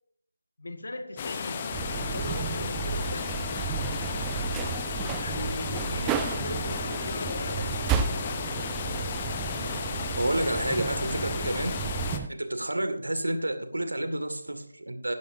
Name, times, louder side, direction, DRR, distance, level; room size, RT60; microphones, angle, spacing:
voice 1, 0.6-1.7 2.0-3.4 5.2-8.1 12.1-12.4, left 1 dB, 55° left, 6 dB, 1.7 m, -39 dB
sound 1, 1.2-12.2, left 6 dB, 20° left, 0.8 m, -34 dB
sound 2, 1.7-12.3, right 7 dB, 10° right, 0.4 m, -33 dB
voice 2, 10.2-11.8 12.3-15.1, right 1 dB, 65° right, 7 dB, 2.0 m, -29 dB
16.0 x 10.5 x 2.7 m, 0.65 s
figure-of-eight pair, 160°, 0 cm